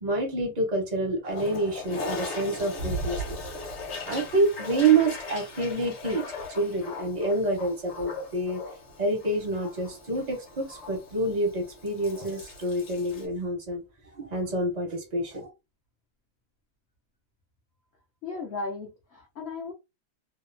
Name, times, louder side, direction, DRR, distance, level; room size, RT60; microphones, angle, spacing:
voice 1, 0.0-3.4 4.1-6.2 6.5-8.6 9.0-13.8 14.2-15.5, right 2 dB, 50° right, 0.5 m, -27 dB
Toilet flush, 1.3-13.3, left 2 dB, 55° left, 0.9 m, -38 dB
voice 2, 18.2-19.7, left 3 dB, 80° left, 0.6 m, -36 dB
2.8 x 2.0 x 2.5 m
omnidirectional pair, 1.7 m